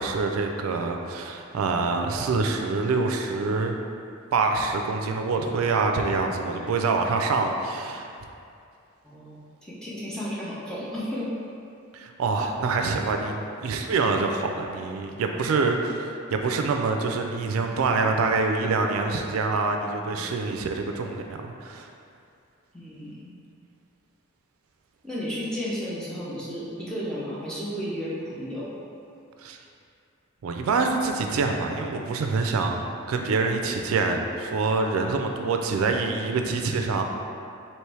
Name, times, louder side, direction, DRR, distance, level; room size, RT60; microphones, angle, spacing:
voice 1, 0.0-3.8 4.3-8.1 11.9-16.0 16.3-21.9 29.4-29.6 30.4-37.0, right 4 dB, 85° right, 3 dB, 0.4 m, -26 dB
voice 2, 9.0-11.3 15.3-15.4 20.2-20.3 22.7-23.3 25.0-28.7 32.4-32.5, equal, 5° left, -8 dB, 0.6 m, -33 dB
3.2 x 3.0 x 4.6 m, 2.5 s
head